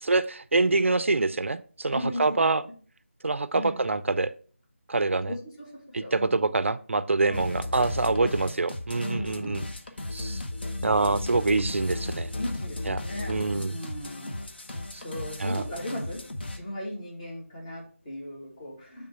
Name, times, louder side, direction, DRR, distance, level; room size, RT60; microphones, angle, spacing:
voice 1, 0.0-2.6 3.2-4.3 4.9-5.3 5.9-9.7 10.1-10.4 10.8-12.3 12.9-13.8 14.9-15.0 15.4-15.6, right 3 dB, 70° right, 15 dB, 0.4 m, -25 dB
voice 2, 1.9-2.4 3.5-3.8 5.3-6.5 7.2-7.6 8.2-8.3 9.0-9.7 12.4-14.4 14.9-16.2 16.5-19.1, left 1 dB, 30° left, -2 dB, 2.0 m, -37 dB
sound 1, 7.3-16.6, left 2 dB, 50° left, 0.9 m, -35 dB
6.4 x 3.6 x 5.5 m, 0.43 s
figure-of-eight pair, 165°, 7 cm